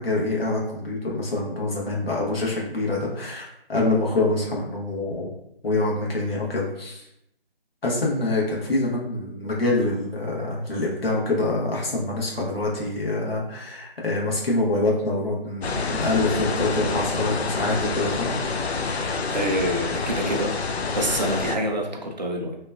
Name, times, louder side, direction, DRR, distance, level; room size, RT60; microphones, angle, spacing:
voice 1, 0.0-5.3 5.6-7.1 7.8-18.3, left 2 dB, 65° left, -3 dB, 1.1 m, -25 dB
sound 1, 15.6-21.6, left 4 dB, 90° left, 0.5 m, -27 dB
voice 2, 18.9-20.5 21.0-22.6, right 1 dB, 45° right, 2 dB, 0.4 m, -27 dB
2.9 x 2.2 x 2.3 m, 0.77 s
figure-of-eight pair, 160°, 31 cm